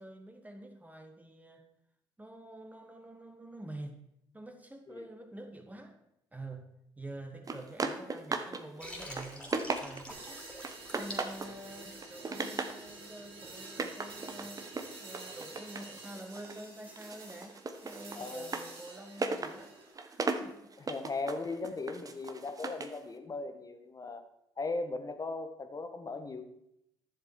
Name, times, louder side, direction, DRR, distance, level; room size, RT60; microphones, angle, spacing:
voice 1, 0.0-1.7 2.2-4.0 4.3-6.0 6.3-9.5 9.8-10.4 11.0-14.6 15.0-19.7 20.0-20.7, right 1 dB, 15° right, 5 dB, 1.6 m, -47 dB
sound 1, 7.5-8.6 9.0-10.2 10.6-11.6 11.9-12.8 13.6-16.6 17.0-23.0, right 3 dB, 30° right, 1.1 m, -37 dB
Water, 8.8-12.3, left 1 dB, 10° left, 3.3 m, -46 dB
sound 2, 10.1-19.9, right 3 dB, 55° right, 3.4 m, -49 dB
voice 2, 18.1-18.5 20.8-24.2 24.6-26.4, left 3 dB, 30° left, 8 dB, 1.4 m, -38 dB
11.0 x 7.1 x 4.8 m, 0.81 s
hypercardioid pair, 60°, 12 cm